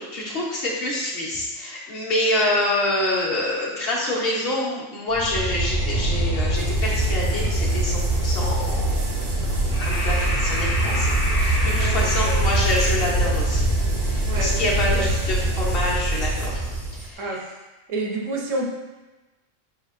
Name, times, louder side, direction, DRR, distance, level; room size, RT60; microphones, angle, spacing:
voice 1, 0.0-8.9 9.8-13.6 14.0-16.6 17.0-17.4, left 1 dB, 55° left, -4 dB, 1.0 m, -26 dB
sound 1, 5.1-17.0, right 1 dB, 30° left, 0.4 m, -23 dB
sound 2, 6.6-17.1, right 2 dB, 55° right, 0.6 m, -40 dB
voice 2, 11.7-12.6 14.2-15.1 17.2-17.6 17.9-18.7, right 2 dB, 85° right, -1 dB, 1.1 m, -30 dB
4.6 x 3.4 x 2.4 m, 1.1 s
omnidirectional pair, 1.3 m